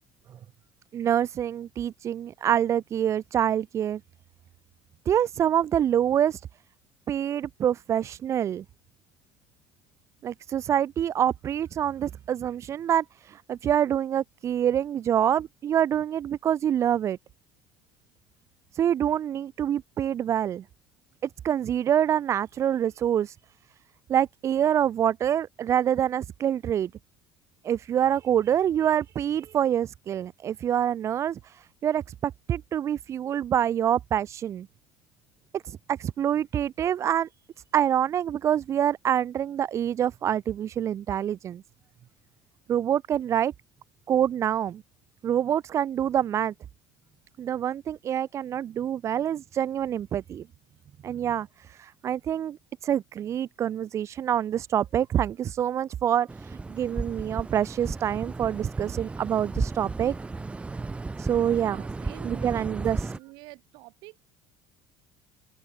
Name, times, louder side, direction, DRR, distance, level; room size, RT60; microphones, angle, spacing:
voice 1, 0.9-4.0 5.1-6.4 7.1-8.6 10.2-17.2 18.7-20.6 21.2-23.4 24.1-26.9 27.6-34.7 35.5-37.3 37.7-41.6 42.7-43.5 44.1-44.8 45.2-46.5 47.4-50.4 51.0-60.1 61.2-61.8 62.2-63.1, right 10 dB, 35° right, 0.4 m, -26 dB
sound 1, 56.3-63.2, right 3 dB, 15° right, 1.9 m, -34 dB
voice 2, 61.5-64.2, right 24 dB, 70° right, 3.8 m, -48 dB
cardioid pair, 120°, 8 cm